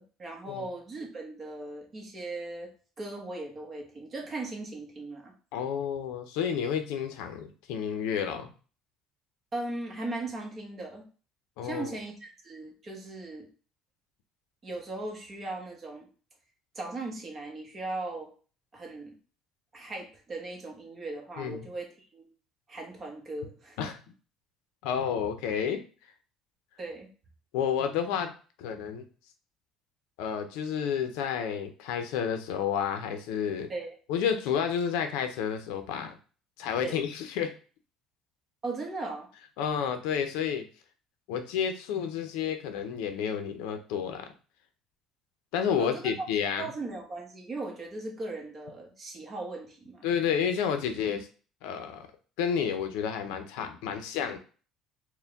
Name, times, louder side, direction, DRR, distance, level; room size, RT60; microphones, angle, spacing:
voice 1, 0.0-2.7 3.0-5.3 9.5-11.1 11.6-13.5 14.6-16.1 16.7-18.3 18.7-19.2 19.7-22.3 22.7-23.8 26.8-27.1 33.7-34.0 36.8-37.0 38.6-39.3 45.8-46.3 46.6-50.1, right 2 dB, 30° right, 1 dB, 1.1 m, -38 dB
voice 2, 5.5-8.5 11.6-12.0 21.4-21.7 23.8-24.0 24.8-25.8 27.5-28.3 28.6-29.1 30.2-33.7 34.1-36.1 36.6-37.5 39.6-40.7 41.3-44.3 45.5-46.7 50.0-51.3 51.6-52.1 52.4-54.4, left 7 dB, 90° left, 7 dB, 0.6 m, -30 dB
4.4 x 2.2 x 3.5 m, 0.38 s
cardioid pair, 140°, 0 cm